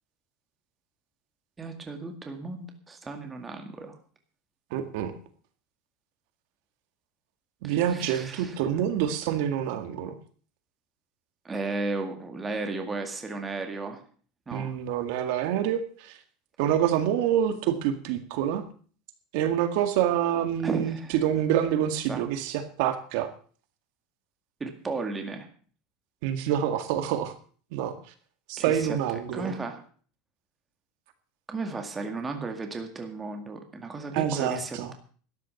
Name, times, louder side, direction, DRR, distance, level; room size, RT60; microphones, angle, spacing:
voice 1, 1.6-4.0 7.6-8.6 11.4-14.0 14.5-14.8 20.6-21.1 22.1-22.3 24.6-25.5 28.6-29.0 29.3-29.8 31.5-34.9, right 3 dB, 15° right, 5 dB, 2.0 m, -34 dB
voice 2, 4.7-5.1 7.6-10.2 14.5-16.2 16.6-18.6 19.3-23.3 26.2-27.3 27.7-27.9 28.5-29.5 34.1-34.9, right 10 dB, 60° right, 9 dB, 1.9 m, -27 dB
13.0 x 10.0 x 7.1 m, 0.43 s
supercardioid pair, 160°, 0 cm